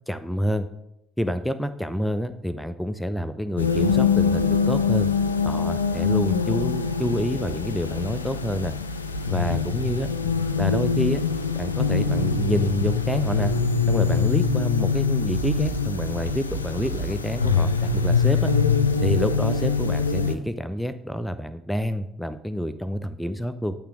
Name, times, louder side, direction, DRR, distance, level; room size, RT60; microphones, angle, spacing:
voice 1, 0.1-0.7 1.2-5.1 5.4-8.7 9.3-10.1 10.6-11.2 11.5-13.5 13.9-18.5 19.0-23.7, equal, 5° left, 11 dB, 0.5 m, -28 dB
sound 1, 3.6-20.3, left 5 dB, 85° left, 0.3 m, -23 dB
8.5 x 3.4 x 5.8 m, 0.82 s
figure-of-eight pair, 50°, 0 cm